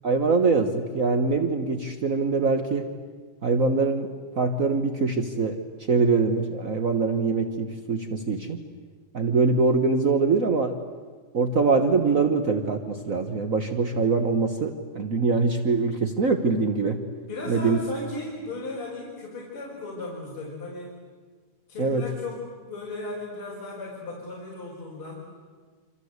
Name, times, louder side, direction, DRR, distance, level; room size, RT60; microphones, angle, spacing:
voice 1, 0.0-2.9 3.4-4.1 4.4-5.6 5.9-8.6 9.1-10.7 11.3-17.0 17.5-17.8 21.8-22.0, right 4 dB, 75° right, 6 dB, 0.7 m, -23 dB
voice 2, 17.3-20.9 21.7-25.2, left 2 dB, 40° left, -4 dB, 5.7 m, -36 dB
27.0 x 27.0 x 8.1 m, 1.5 s
omnidirectional pair, 3.5 m